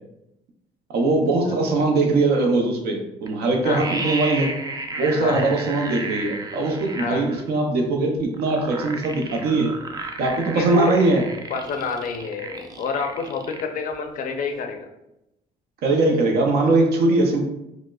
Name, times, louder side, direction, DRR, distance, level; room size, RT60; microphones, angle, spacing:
voice 1, 0.9-4.5 5.0-9.8 10.2-11.2 15.8-17.5, right 2 dB, 70° right, 1 dB, 0.6 m, -21 dB
sound 1, 3.3-3.4 3.5-7.5 8.3-13.6 13.9-14.0, right 3 dB, 20° right, 0.4 m, -33 dB
voice 2, 5.2-5.5 7.0-7.3 10.5-11.0 11.5-14.9, left 5 dB, 55° left, 5 dB, 0.5 m, -28 dB
4.6 x 2.0 x 2.3 m, 0.87 s
cardioid pair, 110°, 17 cm